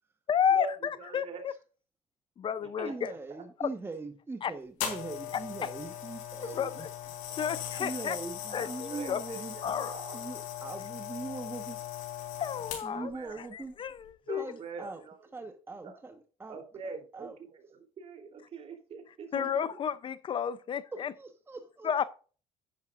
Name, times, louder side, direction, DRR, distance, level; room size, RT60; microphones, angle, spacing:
voice 1, 0.3-1.5 2.4-3.1 3.6-3.7 4.4-4.5 5.3-5.7 6.4-6.9 7.4-8.2 8.5-9.2 9.6-10.0 12.4-13.1 13.4-14.5 19.3-21.1 21.8-22.1, left 8 dB, 40° left, 0.6 m, -31 dB
voice 2, 1.0-1.4 2.8-2.9 3.3-3.4 7.3-7.5 8.5-10.2 12.9-13.4 14.3-15.1 15.8-15.9 16.5-19.5, right 5 dB, 50° right, 3.2 m, -44 dB
voice 3, 2.8-6.9 7.8-9.5 10.1-11.8 12.8-13.7 14.4-15.0 15.3-17.4 19.3-19.8 20.9-21.9, right 3 dB, 15° right, 1.2 m, -41 dB
sound 1, 4.8-13.1 13.9-14.1, left 10 dB, 85° left, 3.9 m, -39 dB
10.5 x 9.5 x 2.5 m
cardioid pair, 115°, 13 cm